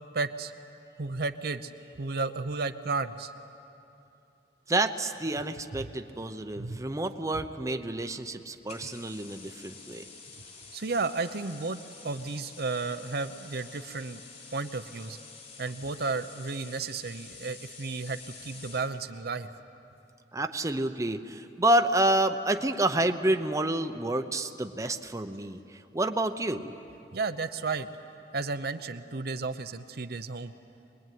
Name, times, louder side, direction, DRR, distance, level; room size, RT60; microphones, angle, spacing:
voice 1, 0.1-0.5 1.0-1.7 2.0-3.3 6.6-6.8 10.7-14.2 14.5-15.2 15.6-19.5 27.1-27.9 28.3-30.5, right 3 dB, 60° right, 9 dB, 0.8 m, -33 dB
voice 2, 4.7-10.0 20.3-26.7, right 1 dB, 20° right, 6 dB, 0.8 m, -29 dB
sound 1, 8.7-18.9, left 5 dB, 45° left, 4.2 m, -48 dB
24.5 x 20.5 x 9.3 m, 2.8 s
head